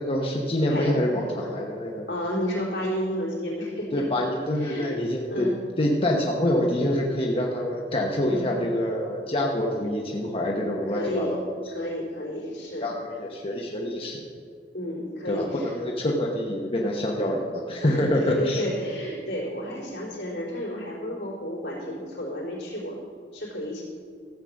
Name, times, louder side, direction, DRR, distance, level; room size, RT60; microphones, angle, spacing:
voice 1, 0.0-2.0 3.9-5.5 5.8-11.4 12.8-14.2 15.3-18.6, left 1 dB, 35° left, -1 dB, 1.0 m, -26 dB
voice 2, 0.7-1.5 2.1-4.1 4.5-4.9 5.3-5.6 8.2-8.5 10.6-11.4 11.7-12.9 14.7-15.8 17.8-23.0 23.3-23.8, equal, 75° left, -4 dB, 3.8 m, -32 dB
14.0 x 7.4 x 6.3 m, 2.1 s
head